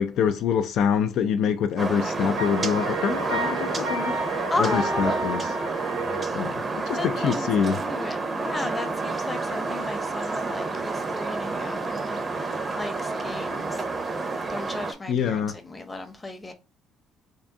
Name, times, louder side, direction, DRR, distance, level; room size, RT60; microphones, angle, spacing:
voice 1, 0.0-5.6 6.3-7.8 15.1-15.6, left 7 dB, 65° left, 0.3 m, -25 dB
sound 1, 1.8-14.9, right 3 dB, 30° right, 0.6 m, -29 dB
Wind instrument woodwind instrument, 2.4-6.3, right 2 dB, 90° right, 1.6 m, -32 dB
voice 2, 4.5-5.2 6.9-7.5 7.8-13.9 14.5-16.5, left 2 dB, 15° left, 0.7 m, -34 dB
3.6 x 2.5 x 3.5 m
cardioid pair, 130°, 0 cm